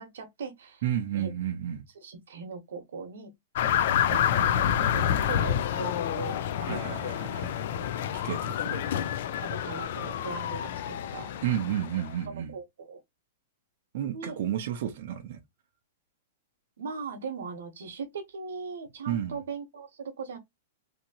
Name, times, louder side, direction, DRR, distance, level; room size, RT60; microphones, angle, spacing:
voice 1, 0.0-0.8 1.1-1.3 2.0-3.3 4.1-6.5 7.5-7.9 9.4-11.3 12.3-13.0 14.1-14.4 16.8-20.4, right 4 dB, 90° right, 0.9 m, -39 dB
voice 2, 0.8-1.8 4.1-5.1 6.6-7.7 8.1-9.2 11.4-12.5 13.9-15.4 19.1-19.4, right 10 dB, 50° right, 0.6 m, -32 dB
sound 1, 3.6-12.1, left 10 dB, 55° left, 0.3 m, -28 dB
2.9 x 2.6 x 2.8 m
supercardioid pair, 170°, 0 cm